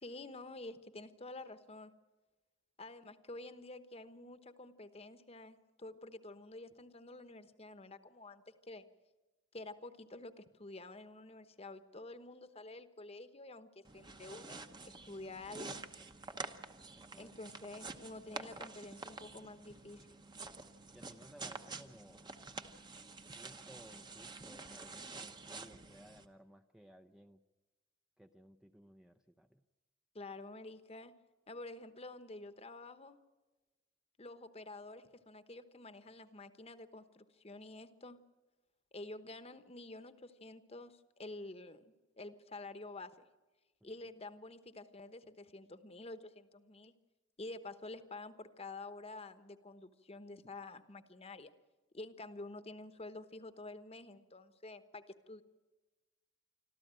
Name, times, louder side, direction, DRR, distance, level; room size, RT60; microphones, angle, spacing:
voice 1, 0.0-1.9 2.8-8.8 9.5-15.9 17.2-20.3 30.1-31.1 31.5-33.2 34.2-38.2 38.9-41.8 42.2-43.2 43.8-46.9 47.4-51.5 51.9-55.4, left 2 dB, 30° left, 11 dB, 1.1 m, -49 dB
sound 1, 13.8-26.3, right 3 dB, 20° right, 1.0 m, -48 dB
voice 2, 17.0-17.3 20.9-22.3 23.3-27.4 28.2-29.6 43.8-43.9, right 1 dB, 5° right, 6 dB, 0.6 m, -59 dB
26.0 x 13.5 x 8.9 m, 1.2 s
head